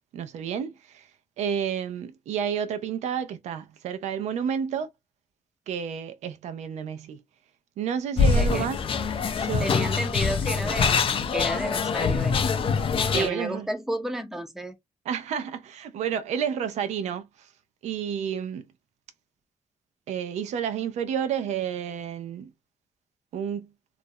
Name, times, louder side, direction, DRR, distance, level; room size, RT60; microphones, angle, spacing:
voice 1, 0.1-4.9 5.7-7.2 7.8-8.8 9.3-9.7 13.1-13.7 15.1-17.5 17.8-18.7 20.1-22.5 23.3-23.7, right 8 dB, 85° right, 0.4 m, -30 dB
sound 1, 8.2-13.3, left 5 dB, 50° left, 0.4 m, -24 dB
voice 2, 8.3-8.7 9.6-11.0 11.3-12.4 13.1-14.7, right 1 dB, 5° right, 0.5 m, -32 dB
2.4 x 2.0 x 2.6 m
cardioid pair, 80°, 11 cm